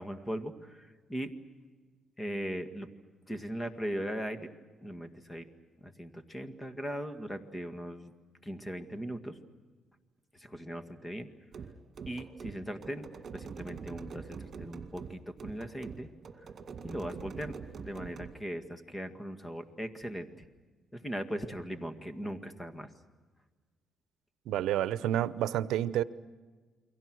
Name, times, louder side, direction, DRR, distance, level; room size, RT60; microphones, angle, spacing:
voice 1, 0.0-1.3 2.2-2.9 3.3-4.5 4.8-5.5 5.8-8.1 8.4-9.4 10.3-11.3 12.1-13.1 13.3-16.1 16.4-16.5 16.8-17.6 17.8-20.3 20.9-22.9, equal, 15° left, 8 dB, 1.9 m, -39 dB
sound 1, 11.5-18.4, right 6 dB, 50° right, 2.2 m, -44 dB
voice 2, 24.5-26.0, right 12 dB, 85° right, 16 dB, 0.7 m, -29 dB
29.5 x 23.0 x 6.3 m, 1.4 s
cardioid pair, 90°, 0 cm